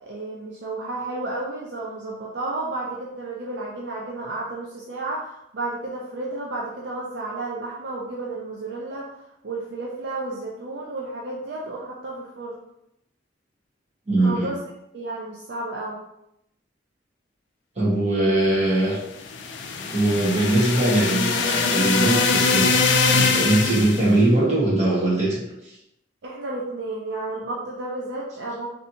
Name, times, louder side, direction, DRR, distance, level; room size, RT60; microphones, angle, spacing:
voice 1, 0.0-9.1 9.4-12.6 14.2-14.6 14.9-16.0 26.2-28.7, right 2 dB, 70° right, -3 dB, 0.5 m, -32 dB
voice 2, 14.1-14.5 17.8-19.0 19.9-22.8 23.1-25.4, right 1 dB, 40° right, -7 dB, 1.3 m, -21 dB
sound 1, 19.2-24.1, left 4 dB, 75° left, 0.4 m, -22 dB
3.3 x 2.7 x 2.8 m, 0.82 s
head